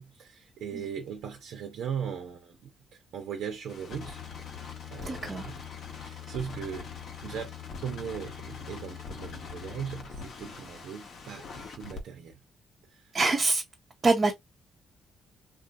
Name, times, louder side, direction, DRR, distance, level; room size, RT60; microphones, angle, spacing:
voice 1, 0.0-2.6 2.9-5.6 6.0-6.9 7.2-7.5 7.8-12.3 13.0-13.1, right 7 dB, 75° right, 0.9 m, -39 dB
sound 1, 3.7-12.0, left 6 dB, 60° left, 1.2 m, -42 dB
voice 2, 5.0-5.5 13.1-13.6 14.0-14.3, right 3 dB, 35° right, 0.9 m, -25 dB
2.7 x 2.7 x 2.4 m
cardioid pair, 90°, 0 cm